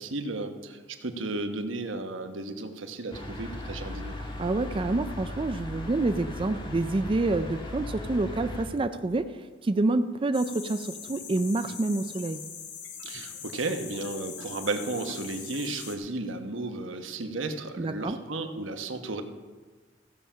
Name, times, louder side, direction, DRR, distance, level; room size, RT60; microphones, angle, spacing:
voice 1, 0.0-4.3 13.0-19.2, right 2 dB, 90° right, 6 dB, 1.2 m, -34 dB
sound 1, 3.1-8.6, left 1 dB, 25° left, 1.5 m, -37 dB
voice 2, 4.4-12.4 17.8-18.2, right 2 dB, 30° right, 9 dB, 0.4 m, -28 dB
sound 2, 10.3-16.0, left 7 dB, 65° left, 1.6 m, -42 dB
15.5 x 7.4 x 5.6 m, 1.3 s
head